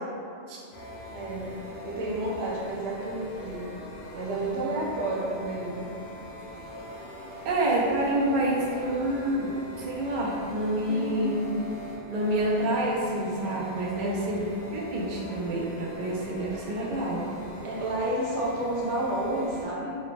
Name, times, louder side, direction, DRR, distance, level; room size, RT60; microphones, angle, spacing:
sound 1, 0.7-19.6, equal, 75° left, 0.9 m, -42 dB
voice 1, 1.1-3.7 4.1-6.0 7.4-7.5 10.9-11.5 13.9-14.3 17.6-20.0, right 1 dB, 80° right, -5 dB, 0.9 m, -31 dB
voice 2, 7.4-11.4 12.1-14.5 14.7-17.3, right 1 dB, 60° right, -4 dB, 0.6 m, -28 dB
3.2 x 2.0 x 3.0 m, 2.4 s
omnidirectional pair, 1.2 m